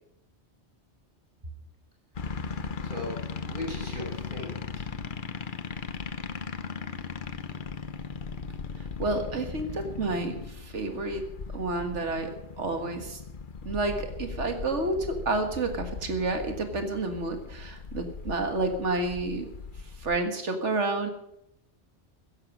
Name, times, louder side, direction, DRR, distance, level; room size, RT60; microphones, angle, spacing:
sound 1, 2.1-20.2, left 5 dB, 50° left, 1.0 m, -38 dB
voice 1, 2.5-4.8, left 1 dB, 45° right, -1 dB, 5.8 m, -39 dB
voice 2, 8.8-11.2 11.5-12.3 12.6-13.2 13.7-19.5 20.0-21.1, right 2 dB, 90° right, 6 dB, 2.1 m, -30 dB
15.0 x 11.0 x 6.2 m, 0.80 s
omnidirectional pair, 1.2 m